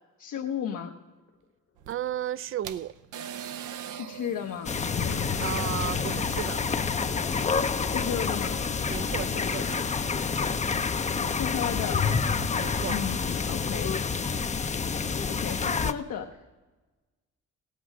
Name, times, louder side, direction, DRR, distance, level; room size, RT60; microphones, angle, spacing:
voice 1, 0.2-0.9 3.9-4.7 7.9-8.6 11.3-12.1 12.9-14.0 15.3-16.4, left 8 dB, 70° left, 0.9 m, -34 dB
sound 1, 1.0-1.1 1.3-1.4 2.2-2.3 2.8-2.9 4.6-10.9 11.4-12.3, left 5 dB, 50° left, 1.1 m, -41 dB
sound 2, 1.8-7.2, right 9 dB, 80° right, 0.7 m, -43 dB
voice 2, 1.9-2.9 5.4-6.6 8.9-9.8 12.6-13.0, right 11 dB, 45° right, 0.4 m, -34 dB
sound 3, 4.6-15.9, left 5 dB, 25° left, 0.5 m, -28 dB
16.5 x 8.6 x 6.1 m
cardioid pair, 90°, 30 cm